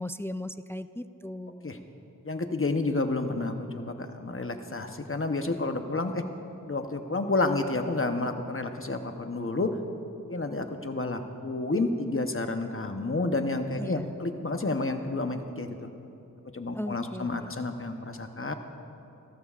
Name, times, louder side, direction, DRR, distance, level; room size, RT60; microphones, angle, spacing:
voice 1, 0.0-1.8 13.8-14.2 16.7-17.5, left 1 dB, 10° left, 12 dB, 0.3 m, -37 dB
voice 2, 2.2-6.2 6.7-9.8 10.3-15.9 16.5-18.5, left 2 dB, 40° left, 6 dB, 0.9 m, -30 dB
28.0 x 12.5 x 2.5 m, 2.8 s
wide cardioid pair, 45°, 34 cm